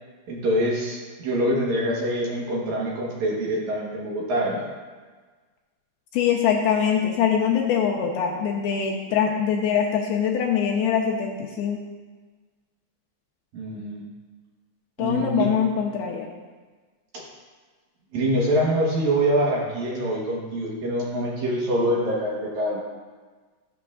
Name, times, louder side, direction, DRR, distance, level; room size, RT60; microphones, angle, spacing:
voice 1, 0.3-4.7 13.5-14.0 15.0-15.5 17.1-17.2 18.1-22.8, right 1 dB, 65° right, -3 dB, 1.9 m, -25 dB
voice 2, 6.1-11.8 15.0-16.3, left 8 dB, 80° left, 0 dB, 2.4 m, -23 dB
13.5 x 6.8 x 2.4 m, 1.4 s
omnidirectional pair, 4.8 m